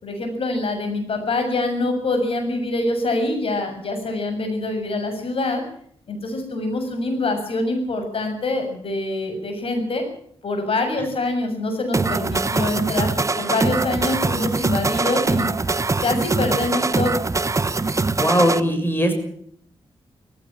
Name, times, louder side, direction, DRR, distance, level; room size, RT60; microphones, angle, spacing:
voice 1, 0.0-5.6 6.1-10.0 10.4-15.5 16.0-17.2, left 2 dB, 65° left, 6 dB, 7.1 m, -25 dB
sound 1, 11.9-18.6, right 3 dB, 30° right, 1.2 m, -22 dB
voice 2, 18.2-19.1, equal, 20° left, 7 dB, 6.7 m, -19 dB
18.5 x 16.5 x 8.9 m, 0.65 s
cardioid pair, 60°, 10 cm